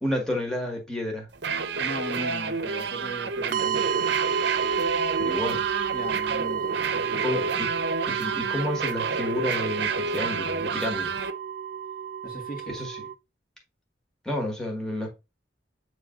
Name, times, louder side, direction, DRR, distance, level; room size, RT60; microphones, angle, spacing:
voice 1, 0.0-1.3 5.2-5.6 7.1-7.7 8.0-11.1 12.7-13.0 14.2-15.1, left 1 dB, 5° left, 1.4 m, -30 dB
sound 1, 1.3-11.3, right 4 dB, 65° right, 0.7 m, -30 dB
voice 2, 1.7-3.9 5.9-7.5 12.2-12.8, right 1 dB, 50° left, 1.7 m, -38 dB
sound 2, 3.5-13.1, right 8 dB, 45° right, 0.4 m, -31 dB
8.2 x 3.2 x 3.8 m
head